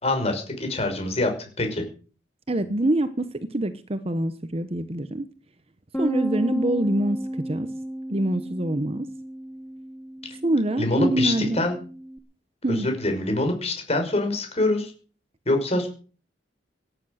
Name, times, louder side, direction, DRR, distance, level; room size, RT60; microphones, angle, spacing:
voice 1, 0.0-1.8 10.8-11.7 12.7-14.9 15.5-15.9, left 2 dB, 35° left, 5 dB, 5.7 m, -25 dB
voice 2, 2.5-5.2 6.0-7.7 8.1-9.1 10.4-11.7 12.6-12.9, right 1 dB, 35° right, 11 dB, 1.0 m, -25 dB
Bass guitar, 5.9-12.2, right 1 dB, 10° left, 1.4 m, -33 dB
17.5 x 10.0 x 6.5 m, 0.40 s
head